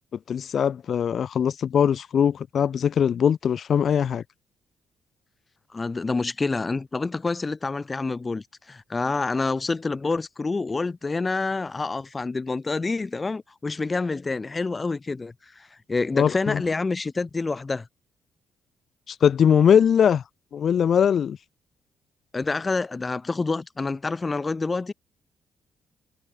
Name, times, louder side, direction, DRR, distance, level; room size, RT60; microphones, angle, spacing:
voice 1, 0.3-4.2 16.2-16.6 19.1-20.2 20.5-21.4, left 8 dB, 55° left, 0.8 m, -21 dB
voice 2, 5.7-17.9 22.3-24.9, left 3 dB, 25° left, 3.1 m, -27 dB
cardioid pair, 90°, 0 cm